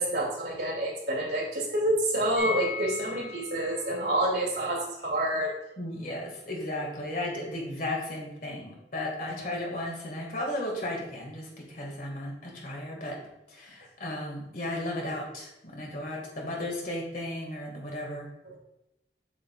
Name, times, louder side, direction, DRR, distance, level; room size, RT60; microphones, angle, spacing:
voice 1, 0.0-5.5 9.3-9.5 18.4-18.6, right 1 dB, 65° right, -3 dB, 2.4 m, -28 dB
sound 1, 2.3-8.1 8.4-8.5 8.7-8.8, left 5 dB, ahead, 1.8 m, -41 dB
voice 2, 5.8-13.2 13.5-18.3, left 1 dB, 50° left, -1 dB, 2.0 m, -35 dB
7.6 x 6.9 x 2.4 m, 0.85 s
head